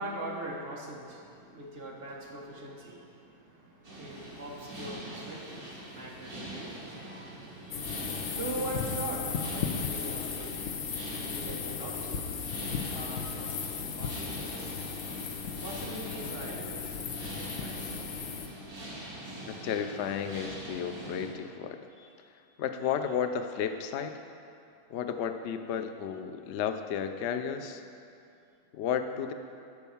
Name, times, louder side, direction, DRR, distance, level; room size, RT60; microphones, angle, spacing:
voice 1, 0.0-10.8 11.1-12.2 12.9-14.9 15.5-17.8 21.9-22.1, right 1 dB, 35° right, -2 dB, 1.4 m, -42 dB
sound 1, 3.8-21.3, right 1 dB, 55° right, 2.6 m, -43 dB
sound 2, 7.7-18.5, left 7 dB, 60° left, 0.9 m, -36 dB
voice 2, 19.5-21.8 22.6-24.2 24.9-27.8 28.7-29.3, left 8 dB, 85° left, 8 dB, 0.6 m, -33 dB
11.5 x 4.6 x 7.1 m, 2.5 s
omnidirectional pair, 1.8 m